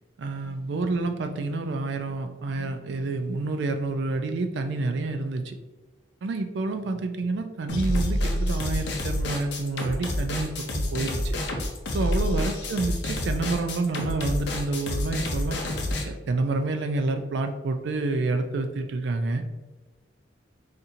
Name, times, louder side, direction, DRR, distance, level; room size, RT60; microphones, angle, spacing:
voice 1, 0.2-5.6 6.2-11.4 11.9-15.6 16.1-19.4, right 3 dB, 65° right, 7 dB, 0.3 m, -28 dB
sound 1, 7.7-16.0, left 1 dB, 60° left, 0.5 m, -28 dB
4.2 x 2.5 x 2.6 m, 1.2 s
head